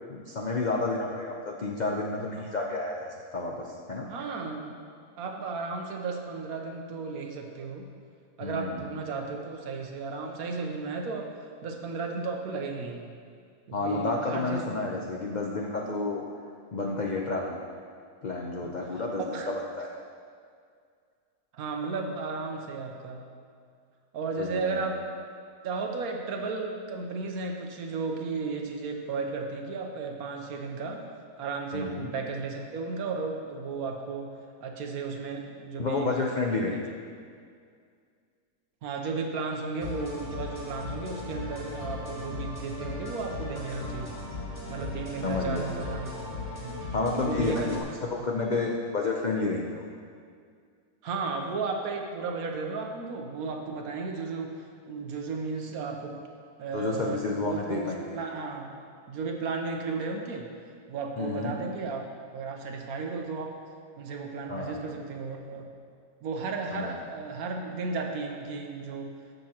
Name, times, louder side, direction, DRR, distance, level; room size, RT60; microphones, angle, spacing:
voice 1, 0.1-3.0 3.3-4.1 8.4-8.8 13.7-16.2 16.7-17.6 18.2-19.9 24.4-24.7 31.7-32.1 35.8-36.8 45.2-45.7 46.9-49.8 56.7-58.0 61.2-61.5 64.5-64.8 66.7-66.9, left 3 dB, 80° left, -1 dB, 0.4 m, -30 dB
voice 2, 4.1-4.7 5.2-7.9 8.4-13.1 13.7-14.6 18.6-19.5 21.5-23.2 24.1-25.1 25.6-31.1 31.4-34.3 34.6-36.1 36.5-36.8 38.8-44.1 44.7-46.2 46.6-46.8 47.2-47.9 51.0-56.3 56.6-57.9 58.1-58.8 59.1-60.5 60.9-62.0 62.3-63.6 64.0-65.7 66.2-69.2, right 4 dB, 65° right, 2 dB, 1.3 m, -34 dB
sound 1, 39.8-47.8, left 3 dB, 20° left, 2.2 m, -37 dB
13.5 x 6.6 x 2.9 m, 2.2 s
omnidirectional pair, 1.7 m